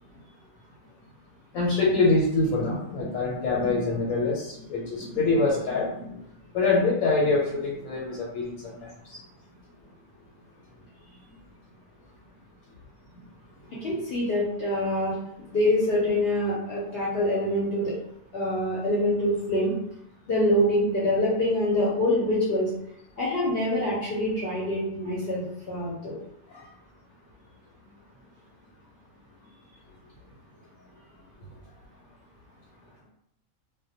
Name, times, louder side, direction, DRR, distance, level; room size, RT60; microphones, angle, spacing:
voice 1, 1.5-6.2 6.5-9.2 26.5-26.7, left 3 dB, 85° left, -4 dB, 1.0 m, -25 dB
voice 2, 13.8-15.2 15.5-17.9 18.3-19.7 20.3-22.7 23.2-26.2, left 1 dB, 60° left, -7 dB, 0.7 m, -25 dB
2.1 x 2.1 x 2.7 m, 0.77 s
omnidirectional pair, 1.4 m